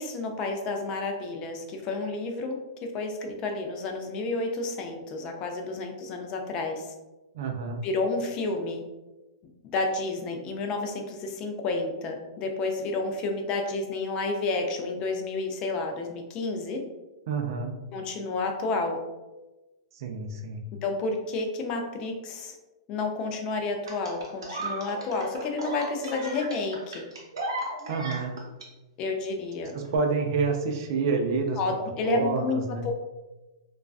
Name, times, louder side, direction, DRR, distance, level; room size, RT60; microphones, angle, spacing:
voice 1, 0.0-2.5 2.9-6.9 7.8-8.8 9.6-16.8 17.9-19.0 20.8-22.6 22.9-27.0 29.0-29.8 31.6-32.6 32.8-32.9, left 3 dB, 35° left, 3 dB, 0.4 m, -30 dB
voice 2, 7.3-7.8 17.3-17.7 19.9-20.6 27.9-28.3 29.7-31.6 32.0-32.9, right 4 dB, 60° right, 3 dB, 0.4 m, -28 dB
sound 1, 23.9-28.7 29.8-30.0, right 2 dB, 85° right, 0.7 m, -35 dB
2.4 x 2.2 x 2.3 m, 1.1 s
hypercardioid pair, 130°, 2 cm